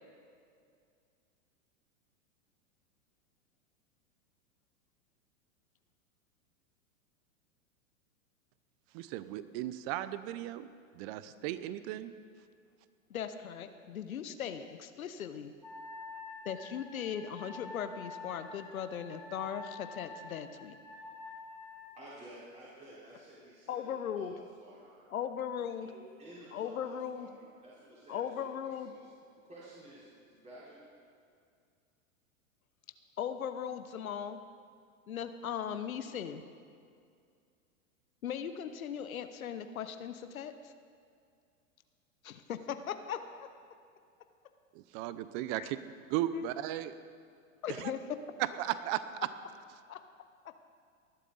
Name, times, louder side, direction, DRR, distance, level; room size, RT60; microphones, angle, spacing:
voice 1, 8.9-12.1 44.7-45.8 46.1-46.9 47.8-47.9 48.4-49.0, right 14 dB, 45° right, 14 dB, 0.8 m, -36 dB
voice 2, 13.1-15.5 16.4-20.8 23.7-24.3 25.1-25.9 26.5-27.3 28.1-28.9 33.2-34.4 35.1-36.4 38.2-40.7 42.2-43.5 45.6-45.7 46.3-46.5 47.6-48.0 49.9-50.0 50.4-50.6, left 8 dB, 90° left, 9 dB, 0.9 m, -38 dB
Wind instrument woodwind instrument, 15.6-22.0, left 3 dB, ahead, 4.3 m, -48 dB
voice 3, 22.0-25.0 25.8-29.1 29.4-30.8, right 1 dB, 15° right, -9 dB, 4.2 m, -53 dB
19.0 x 11.5 x 4.0 m, 2.3 s
hypercardioid pair, 110°, 41 cm